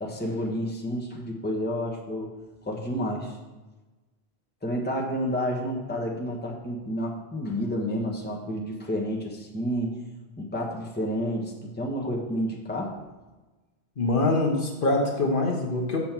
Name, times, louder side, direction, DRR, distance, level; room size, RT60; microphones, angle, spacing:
voice 1, 0.0-2.3 2.6-3.4 4.6-10.0 10.4-12.9, equal, 10° left, -1 dB, 1.1 m, -30 dB
voice 2, 14.0-16.0, left 2 dB, 55° left, 0 dB, 1.2 m, -24 dB
7.2 x 5.2 x 6.0 m, 1.2 s
omnidirectional pair, 1.1 m